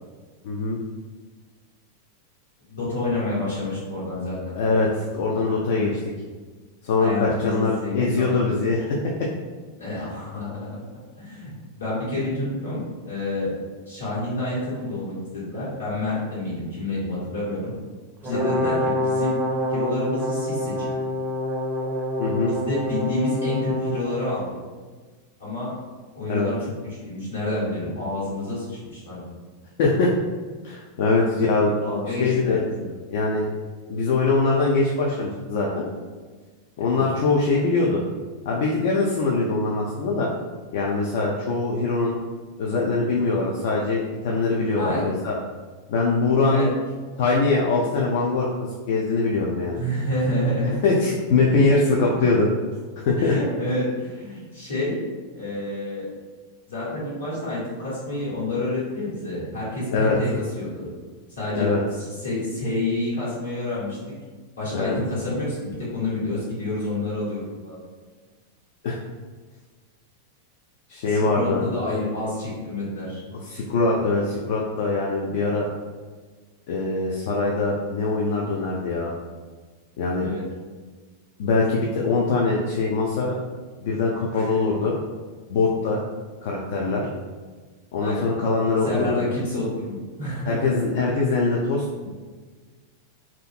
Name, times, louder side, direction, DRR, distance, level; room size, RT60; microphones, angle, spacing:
voice 1, 0.4-0.8 4.6-6.0 6.8-8.9 18.3-18.5 22.2-22.5 26.3-26.5 29.8-30.1 30.6-31.7 32.2-32.6 33.1-33.5 33.9-35.9 36.8-38.0 38.5-40.3 40.7-42.2 42.6-45.3 45.9-46.7 47.2-48.5 48.9-49.8 50.8-52.5 53.1-53.3 59.9-60.2 61.6-61.8 64.7-65.0 68.8-69.0 70.9-71.6 73.4-75.7 76.7-79.1 80.0-80.3 81.4-83.3 83.8-84.9 85.5-86.0 86.4-87.1 87.9-89.1 90.5-92.1, left 3 dB, 50° left, -3 dB, 0.3 m, -22 dB
voice 2, 2.7-4.6 5.7-5.9 7.0-8.4 9.8-10.8 11.2-13.5 13.9-17.7 18.2-19.4 19.7-20.9 22.5-24.5 25.4-25.7 26.1-26.5 26.8-29.3 31.8-32.9 36.9-37.0 44.7-45.0 46.5-46.7 49.8-50.8 51.7-52.2 53.2-54.9 55.3-56.1 56.7-60.9 61.3-61.7 61.9-64.0 64.6-67.8 71.1-73.2 80.2-80.4 84.3-84.6 88.0-88.3 88.6-90.9, left 1 dB, 70° left, -9 dB, 1.3 m, -29 dB
Brass instrument, 18.2-24.1, left 1 dB, 25° right, 0.4 m, -26 dB
2.5 x 2.5 x 2.4 m, 1.4 s
figure-of-eight pair, 90°, 0 cm